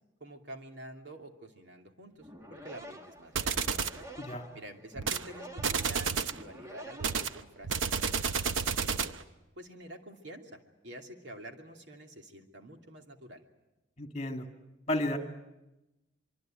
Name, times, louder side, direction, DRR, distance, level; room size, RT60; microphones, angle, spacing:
voice 1, 0.2-3.8 4.5-9.2 9.6-13.4, right 1 dB, 65° right, 3 dB, 2.8 m, -48 dB
sound 1, 2.1-7.9, equal, 15° right, 1.7 m, -49 dB
sound 2, 3.4-4.0 5.0-5.3 5.6-6.4 7.0-9.2, right 6 dB, 85° right, 0.9 m, -31 dB
voice 2, 4.2-4.5 14.0-14.4 14.9-15.2, left 1 dB, 35° left, 5 dB, 2.5 m, -32 dB
25.0 x 24.5 x 9.1 m, 0.97 s
head